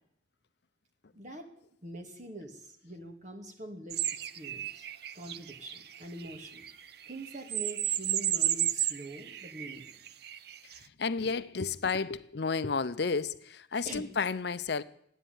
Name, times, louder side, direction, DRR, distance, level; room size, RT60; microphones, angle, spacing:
voice 1, 1.1-1.5 1.8-4.9 5.1-9.9 13.9-14.1, right 1 dB, 40° right, 2.4 m, -44 dB
sound 1, 3.9-10.8, right 11 dB, 55° right, 0.6 m, -33 dB
voice 2, 11.0-14.8, left 4 dB, 55° left, 0.6 m, -31 dB
15.0 x 10.0 x 9.3 m
head